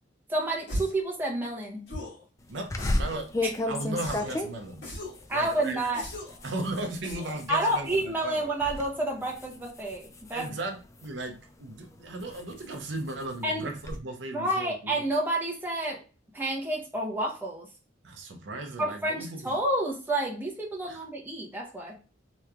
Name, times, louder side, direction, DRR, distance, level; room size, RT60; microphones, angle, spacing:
voice 1, 0.3-1.9 3.4-3.5 5.3-6.0 7.5-10.5 13.4-13.7 14.3-16.0 16.3-17.7 18.8-22.0, right 1 dB, 10° right, 0.8 m, -29 dB
sound 1, 0.7-1.1 1.9-2.2 2.8-3.3 4.0-4.4 4.8-5.2 5.9-6.4 7.0-7.4, equal, 70° left, 1.7 m, -38 dB
voice 2, 2.5-3.3 3.7-4.9 5.3-5.8 6.4-8.4 10.3-15.0 18.0-19.5 20.9-21.0, right 2 dB, 70° right, 0.6 m, -36 dB
sound 2, 2.7-8.1 8.5-8.9 9.2-11.3 11.8-14.0, left 2 dB, 15° left, 0.3 m, -34 dB
3.4 x 3.0 x 2.3 m
head